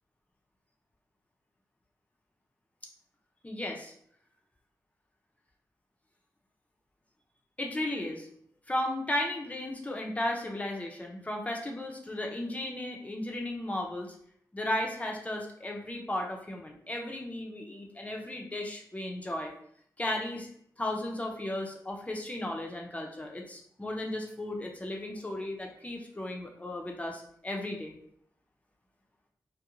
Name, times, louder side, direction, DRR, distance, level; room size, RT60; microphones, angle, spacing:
voice 1, 3.4-3.9 7.6-8.3 8.7-14.1 14.5-19.5 20.0-20.5 20.8-27.9, left 1 dB, 20° left, 0 dB, 0.6 m, -35 dB
2.4 x 2.1 x 2.9 m, 0.65 s
cardioid pair, 75°, 7 cm